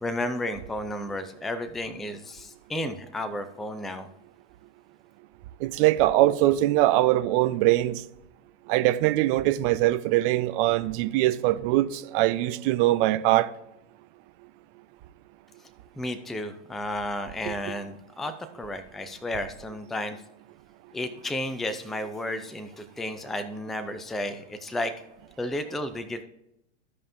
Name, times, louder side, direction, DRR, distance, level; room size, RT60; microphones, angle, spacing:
voice 1, 0.0-4.1 16.0-20.2 20.9-24.9 25.4-26.2, left 1 dB, ahead, 0.4 m, -32 dB
voice 2, 5.6-8.0 8.7-13.5, right 15 dB, 45° right, 0.8 m, -22 dB
15.5 x 5.3 x 2.6 m
hypercardioid pair, 115°, 37 cm